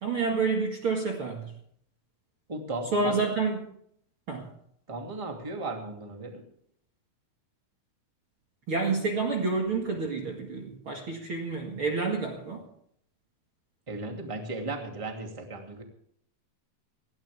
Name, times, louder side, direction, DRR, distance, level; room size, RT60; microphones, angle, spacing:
voice 1, 0.0-1.5 2.9-3.6 4.3-4.5 8.7-12.6, right 4 dB, 45° right, 1 dB, 2.1 m, -29 dB
voice 2, 2.5-3.3 4.9-6.4 13.9-15.8, right 2 dB, 10° right, 2 dB, 1.8 m, -36 dB
19.0 x 16.5 x 3.5 m, 0.67 s
omnidirectional pair, 4.4 m